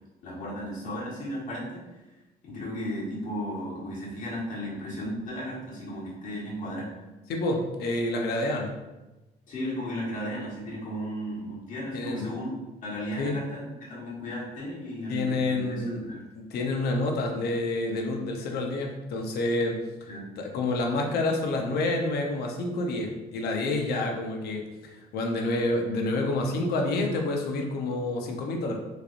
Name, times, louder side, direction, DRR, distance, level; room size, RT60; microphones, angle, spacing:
voice 1, 0.2-1.8 2.4-6.9 9.5-12.5 12.8-16.2 20.1-20.3, equal, 50° left, -6 dB, 1.5 m, -35 dB
voice 2, 7.3-8.7 11.9-12.3 13.2-13.4 15.1-16.0 16.4-19.8 20.4-28.8, left 2 dB, 70° left, 1 dB, 0.7 m, -28 dB
3.9 x 3.2 x 2.5 m, 1.1 s
cardioid pair, 110°, 17 cm